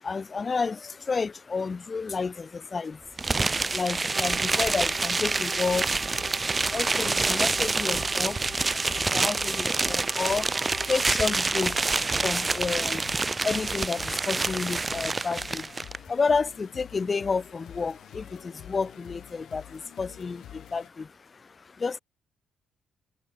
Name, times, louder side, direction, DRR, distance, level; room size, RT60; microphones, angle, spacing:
voice 1, 0.0-21.1 21.8-22.0, left 4 dB, 35° left, 0.8 m, -31 dB
sound 1, 3.2-16.0, right 3 dB, 25° right, 0.8 m, -27 dB
sound 2, 4.1-11.6, right 6 dB, 45° right, 1.3 m, -44 dB
sound 3, 4.2-20.9, left 12 dB, 75° left, 5.7 m, -47 dB
cardioid pair, 90°, 0 cm